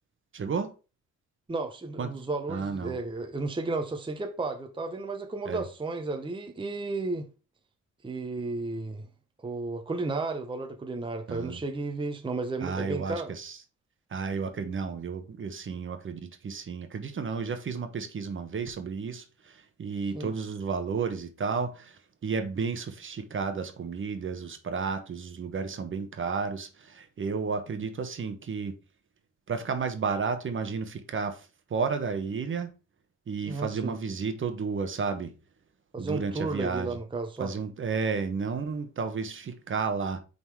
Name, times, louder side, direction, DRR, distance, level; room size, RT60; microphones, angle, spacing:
voice 1, 0.3-0.7 2.0-2.1 2.5-3.0 5.5-5.6 11.3-11.6 12.6-13.6 14.1-28.7 29.5-32.7 33.3-35.3 36.0-37.0 37.4-40.2, right 5 dB, 40° right, 1.1 m, -32 dB
voice 2, 1.5-7.3 8.0-9.1 9.4-13.3 20.1-20.3 33.4-33.9 35.9-37.5, right 3 dB, 15° right, 0.9 m, -33 dB
5.6 x 4.0 x 4.7 m
cardioid pair, 90°, 30 cm